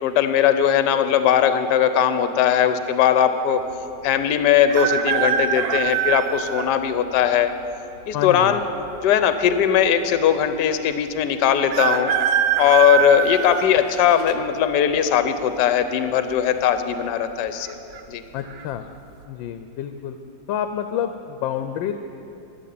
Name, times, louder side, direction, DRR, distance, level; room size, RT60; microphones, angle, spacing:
voice 1, 0.0-3.6 4.0-7.5 8.1-8.6 9.0-12.1 12.6-17.7 18.1-18.2, left 9 dB, 70° left, 9 dB, 1.2 m, -19 dB
sound 1, 4.7-6.7 7.4-7.5 8.6-9.2 9.5-9.6 9.8-9.9 11.7-14.3 14.8-15.3 16.4-16.7 17.0-17.1 17.6-18.0 18.5-18.7, right 9 dB, 75° right, 1.2 m, -23 dB
voice 2, 8.1-8.6 18.3-18.8 19.3-20.2 20.5-21.9, left 10 dB, 90° left, 9 dB, 1.3 m, -28 dB
12.0 x 7.2 x 9.3 m, 2.8 s
omnidirectional pair, 2.0 m